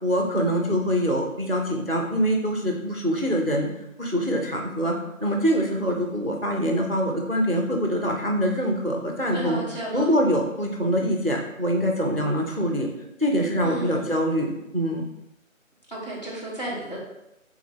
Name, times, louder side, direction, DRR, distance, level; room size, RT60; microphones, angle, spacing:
voice 1, 0.0-3.7 4.0-9.6 9.9-12.9 13.2-15.0, equal, 45° right, 1 dB, 0.4 m, -24 dB
voice 2, 9.3-10.1 13.6-14.1 15.9-17.0, right 1 dB, 30° left, -6 dB, 1.0 m, -33 dB
3.6 x 3.4 x 3.2 m, 0.88 s
figure-of-eight pair, 165°, 42 cm